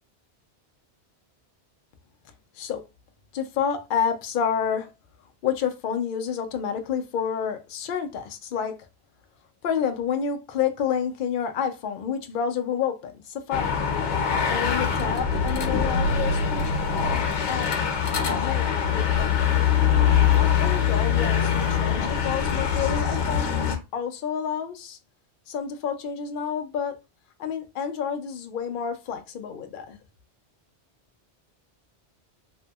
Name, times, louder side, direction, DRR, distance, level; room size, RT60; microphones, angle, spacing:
voice 1, 3.3-4.9 5.4-8.7 9.6-13.8 14.5-16.7 17.5-17.7 18.4-19.6 20.4-23.5 23.9-25.0 25.5-27.0 27.4-30.0, left 7 dB, 60° left, 0.6 m, -29 dB
sound 1, 13.5-23.8, left 7 dB, 90° left, 1.0 m, -23 dB
2.6 x 2.6 x 2.3 m
omnidirectional pair, 1.1 m